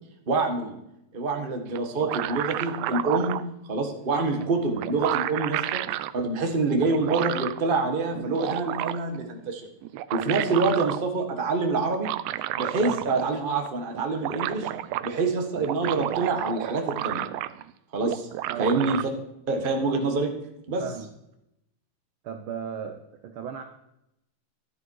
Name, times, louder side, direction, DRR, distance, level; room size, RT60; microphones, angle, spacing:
voice 1, 0.3-0.8 1.1-3.4 3.7-5.8 6.1-9.7 10.1-12.1 12.6-14.7 15.0-17.2 17.9-18.3 18.6-19.1 19.5-20.3 20.7-20.8, right 3 dB, 30° right, 4 dB, 1.0 m, -26 dB
sound 1, 1.8-3.5 4.4-4.5 4.8-6.1 6.8-7.6 8.2-9.2 9.8-11.0 11.9-13.4 13.7-13.8 14.0-15.1 15.5-17.7 18.0-19.0, right 14 dB, 85° right, 1.4 m, -31 dB
voice 2, 18.5-19.0 20.8-21.1 22.2-23.6, right 7 dB, 70° right, 7 dB, 1.3 m, -36 dB
12.5 x 10.5 x 4.7 m, 0.83 s
omnidirectional pair, 3.4 m